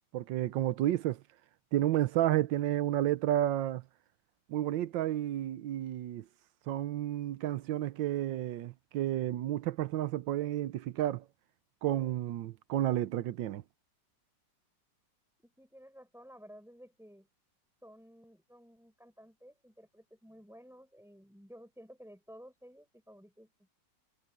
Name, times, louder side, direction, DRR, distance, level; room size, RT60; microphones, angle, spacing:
voice 1, 0.1-1.2 1.7-3.8 4.5-6.2 6.7-11.2 11.8-13.6, right 13 dB, 90° right, 1.4 m, -31 dB
voice 2, 15.4-17.3 17.8-23.7, equal, ahead, 6.6 m, -54 dB
omnidirectional pair, 2.0 m